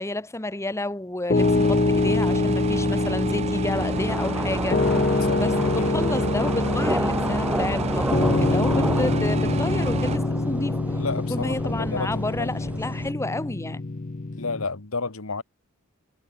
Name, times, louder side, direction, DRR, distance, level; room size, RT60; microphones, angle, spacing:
voice 1, 0.0-4.8 5.3-10.8 11.3-13.8, left 1 dB, 15° left, 1.2 m, -31 dB
Piano, 1.3-14.6, left 3 dB, 35° left, 0.7 m, -25 dB
sound 1, 1.4-10.2, right 4 dB, 30° right, 0.3 m, -31 dB
sound 2, 3.7-13.1, right 1 dB, 5° right, 2.7 m, -31 dB
voice 2, 5.3-6.0 10.9-12.8 14.4-15.4, left 3 dB, 75° left, 1.7 m, -32 dB
head